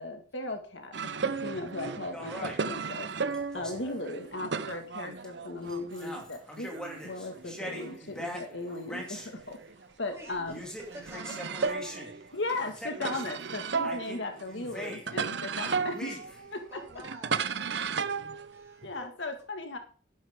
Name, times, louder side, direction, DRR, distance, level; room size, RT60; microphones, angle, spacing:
voice 1, 0.0-3.1 3.5-6.7 7.0-9.6 10.0-10.6 12.3-16.2 16.5-16.6 18.8-19.8, left 2 dB, 75° left, 5 dB, 1.9 m, -37 dB
sound 1, 0.9-6.2 6.5-9.9 10.2-19.1, right 5 dB, 65° right, 0.7 m, -35 dB
sound 2, 2.1-4.0 4.7-4.8 5.2-5.4 5.7-9.3 10.4-12.1 12.5-13.4 13.8-15.3 15.6-16.5, equal, 5° left, 2.6 m, -42 dB
voice 2, 9.7-11.7 16.7-17.6 18.5-19.1, right 1 dB, 15° right, -3 dB, 6.9 m, -50 dB
12.0 x 11.0 x 3.7 m, 0.41 s
head